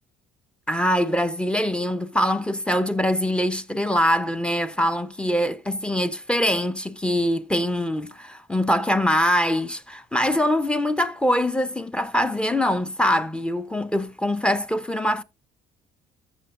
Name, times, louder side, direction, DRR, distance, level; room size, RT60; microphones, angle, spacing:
voice 1, 0.7-15.2, equal, 5° left, 0.7 m, -23 dB
14.5 x 6.9 x 2.5 m
cardioid pair, 110°, 17 cm